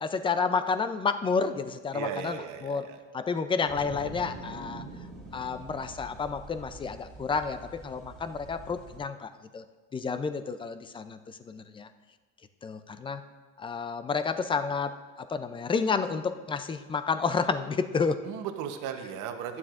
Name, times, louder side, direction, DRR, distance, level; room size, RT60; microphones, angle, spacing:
voice 1, 0.0-2.9 3.1-4.8 5.3-9.6 9.9-11.2 11.4-11.9 12.6-13.2 13.6-15.0 15.3-18.2, left 5 dB, 15° left, 10 dB, 0.4 m, -30 dB
voice 2, 1.9-3.0 18.3-19.6, right 8 dB, 75° right, 6 dB, 1.0 m, -36 dB
sound 1, 3.7-9.0, right 2 dB, ahead, 2.6 m, -45 dB
14.5 x 9.6 x 2.5 m, 1.3 s
cardioid pair, 135°, 30 cm